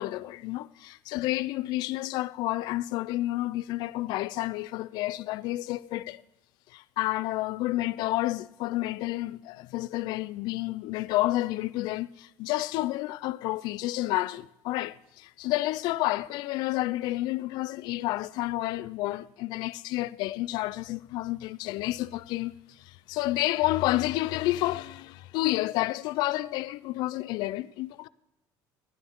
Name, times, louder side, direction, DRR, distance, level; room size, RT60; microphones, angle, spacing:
voice 1, 0.0-6.2 6.7-28.1, left 17 dB, 60° left, 0.4 m, -30 dB
15.0 x 11.5 x 3.6 m
cardioid pair, 175°, 8 cm